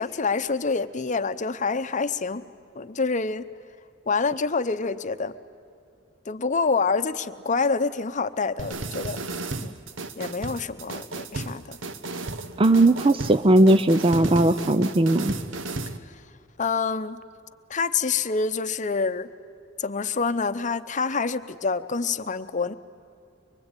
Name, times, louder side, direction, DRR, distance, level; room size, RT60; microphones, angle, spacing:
voice 1, 0.0-2.4 2.7-3.5 4.1-5.3 6.3-9.2 9.6-9.7 10.1-11.8 16.6-17.2 17.7-19.3 19.8-22.7, left 4 dB, 40° left, 12 dB, 0.8 m, -27 dB
sound 1, 8.6-16.0, right 3 dB, 75° right, 1.1 m, -34 dB
voice 2, 12.6-15.3, right 1 dB, 25° right, 11 dB, 0.5 m, -18 dB
24.0 x 23.5 x 9.1 m, 2.5 s
head